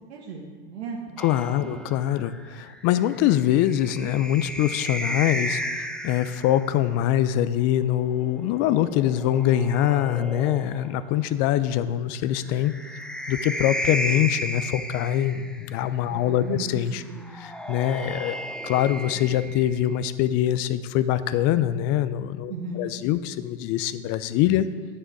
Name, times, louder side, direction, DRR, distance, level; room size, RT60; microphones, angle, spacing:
voice 1, 0.1-1.7 16.1-16.8 17.0-17.3 22.5-22.9, right 4 dB, 85° right, -2 dB, 1.2 m, -36 dB
voice 2, 1.2-5.6 6.0-12.7 13.3-17.0 17.4-18.4 18.6-24.7, left 12 dB, 50° left, 14 dB, 0.6 m, -24 dB
sound 1, 1.2-6.7 8.1-11.1 12.4-15.9 17.1-20.1, equal, ahead, 0.4 m, -34 dB
9.4 x 6.5 x 4.7 m, 1.5 s
hypercardioid pair, 95°, 31 cm